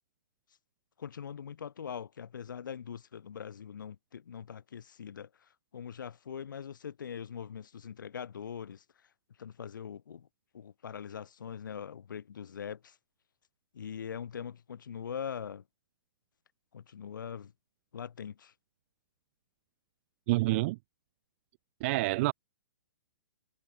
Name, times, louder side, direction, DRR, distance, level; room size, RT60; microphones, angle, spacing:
voice 1, 1.0-5.3 5.7-8.8 9.4-10.3 10.5-12.9 13.7-15.6 16.7-17.5 17.9-18.5, left 7 dB, 70° left, 3.7 m, -42 dB
voice 2, 20.3-20.8 21.8-22.3, right 21 dB, 40° right, 0.5 m, -27 dB
hypercardioid pair, 130°, 11 cm